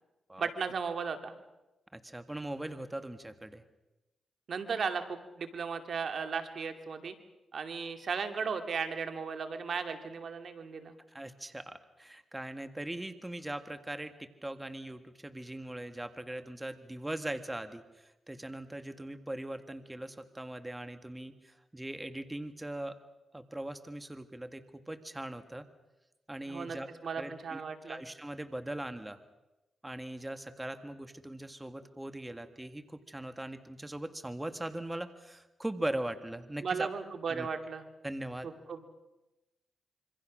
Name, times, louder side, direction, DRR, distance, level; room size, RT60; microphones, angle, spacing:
voice 1, 0.4-1.3 4.5-7.2 7.5-10.9 26.5-26.8 27.0-28.0 36.6-37.8 38.7-38.9, right 5 dB, 65° right, 7 dB, 2.4 m, -36 dB
voice 2, 1.9-3.6 11.1-23.0 23.3-25.7 26.3-26.9 27.2-29.2 29.8-36.9 37.3-37.5 38.0-38.5, right 1 dB, 15° right, 9 dB, 1.8 m, -40 dB
26.5 x 25.0 x 6.3 m, 1.0 s
cardioid pair, 65°, 0 cm